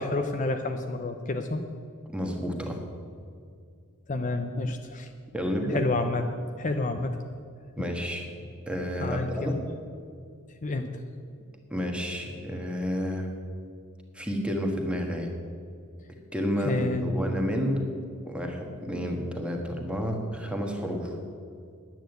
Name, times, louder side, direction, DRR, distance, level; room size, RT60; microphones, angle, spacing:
voice 1, 0.0-1.6 4.1-5.1 5.7-6.3 6.6-7.2 9.0-9.6 10.6-11.0 16.6-17.2, left 2 dB, 35° left, 6 dB, 0.6 m, -29 dB
voice 2, 2.1-2.8 5.3-5.8 7.8-8.3 8.7-9.7 11.7-13.3 14.1-15.3 16.3-17.9 18.2-21.2, equal, 5° right, 2 dB, 1.5 m, -30 dB
10.5 x 9.2 x 7.9 m, 2.3 s
head